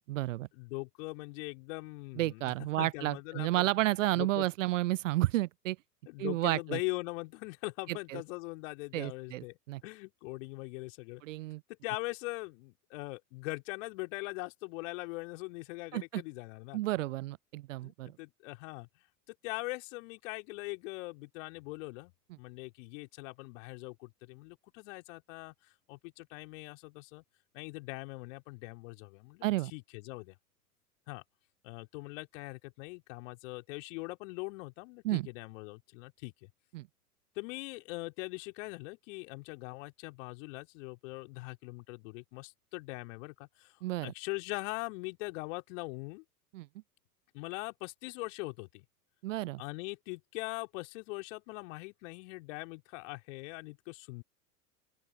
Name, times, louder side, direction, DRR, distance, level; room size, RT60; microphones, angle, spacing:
voice 1, 0.0-0.5 2.2-5.8 6.2-6.8 8.1-8.2 8.9-9.8 11.2-11.6 15.9-16.2 16.7-18.1 29.4-29.7 35.0-35.3 36.7-36.9 43.8-44.1 46.5-46.7 49.2-49.6, right 17 dB, 55° right, 0.5 m, -31 dB
voice 2, 0.5-4.5 6.1-11.2 11.8-16.8 17.8-18.9 19.3-22.1 22.4-27.2 27.5-30.4 31.1-31.2 31.6-36.5 37.4-46.2 47.3-48.9 49.6-54.2, left 26 dB, 50° left, 3.6 m, -41 dB
open air
figure-of-eight pair, 90°, 47 cm